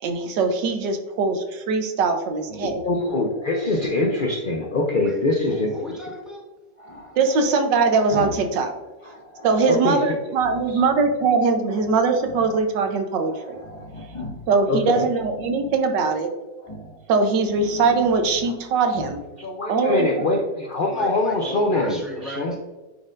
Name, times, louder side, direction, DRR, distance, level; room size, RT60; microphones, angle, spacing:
voice 1, 0.0-2.8 7.2-8.7 9.4-13.6 14.5-16.3 17.1-19.2 19.7-20.3, right 4 dB, 85° right, 6 dB, 1.5 m, -21 dB
Growling, 2.4-4.4 6.8-8.5 8.8-9.7 10.3-11.2 11.7-12.7 13.0-13.1 13.3-14.6 15.1-15.9 16.6-17.0 17.4-18.6 18.9-19.2, left 1 dB, 20° left, 1.1 m, -40 dB
voice 2, 2.6-5.7 9.7-10.0 10.7-10.8 14.7-15.0 19.4-22.5, left 2 dB, 80° left, 1 dB, 0.4 m, -23 dB
voice 3, 5.0-6.5 9.5-9.8 20.9-22.6, left 1 dB, ahead, -5 dB, 1.6 m, -36 dB
9.1 x 4.3 x 2.5 m, 1.2 s
omnidirectional pair, 1.8 m